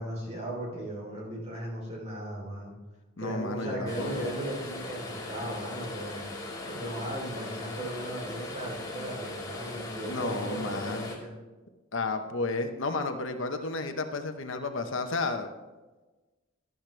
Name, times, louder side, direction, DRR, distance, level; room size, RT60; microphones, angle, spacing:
voice 1, 0.0-2.7 3.2-6.2 6.7-11.3, right 1 dB, 30° right, -2 dB, 3.5 m, -37 dB
voice 2, 3.2-4.2 10.0-11.1 11.9-15.5, left 3 dB, 65° left, 7 dB, 0.9 m, -32 dB
sound 1, 3.9-11.2, left 2 dB, 20° left, 1.8 m, -39 dB
12.5 x 12.0 x 3.3 m, 1.2 s
head